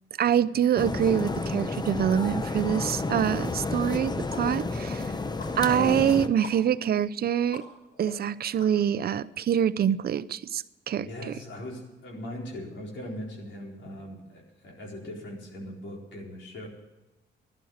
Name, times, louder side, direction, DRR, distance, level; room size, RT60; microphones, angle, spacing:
voice 1, 0.2-5.1 5.5-7.6 8.0-11.3, right 9 dB, 50° right, 0.6 m, -25 dB
sound 1, 0.8-6.3, left 3 dB, 20° left, 0.9 m, -31 dB
sound 2, 3.3-3.4 3.8-9.2, left 3 dB, 50° left, 5.6 m, -48 dB
voice 2, 11.0-16.7, left 1 dB, 70° left, 4.3 m, -40 dB
12.0 x 11.5 x 8.0 m
cardioid pair, 90°, 20 cm